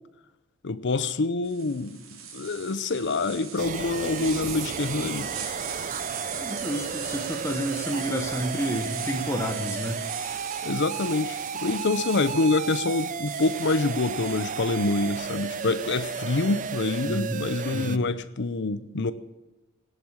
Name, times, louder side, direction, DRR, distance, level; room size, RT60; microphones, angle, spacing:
voice 1, 0.6-2.0 2.3-5.3 10.6-19.1, left 3 dB, 60° left, 0.7 m, -26 dB
sound 1, 1.4-17.1, right 6 dB, 90° right, 3.0 m, -40 dB
sound 2, 3.6-18.0, right 6 dB, 40° right, 0.5 m, -34 dB
voice 2, 6.4-10.0 17.0-17.4 17.7-18.1, equal, 15° left, 1.2 m, -30 dB
18.0 x 8.4 x 7.4 m
head